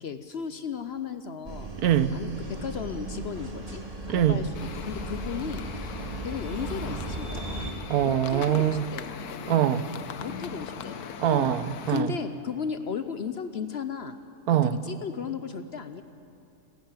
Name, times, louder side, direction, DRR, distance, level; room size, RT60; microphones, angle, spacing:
voice 1, 0.0-1.7 2.1-3.8 4.1-4.5 4.8-5.7 6.2-7.7 8.0-9.2 10.2-11.5 11.9-14.2 14.6-16.0, left 6 dB, 55° left, 10 dB, 0.8 m, -35 dB
sound 1, 1.4-7.7, right 2 dB, 25° right, 2.0 m, -36 dB
voice 2, 1.8-2.1 4.1-4.4 7.9-8.9 9.5-9.9 11.2-12.1 14.5-14.8, right 11 dB, 80° right, 13 dB, 1.2 m, -23 dB
sound 2, 4.5-12.0, left 7 dB, 85° left, 1.4 m, -40 dB
29.0 x 10.5 x 9.0 m, 2.6 s
omnidirectional pair, 1.6 m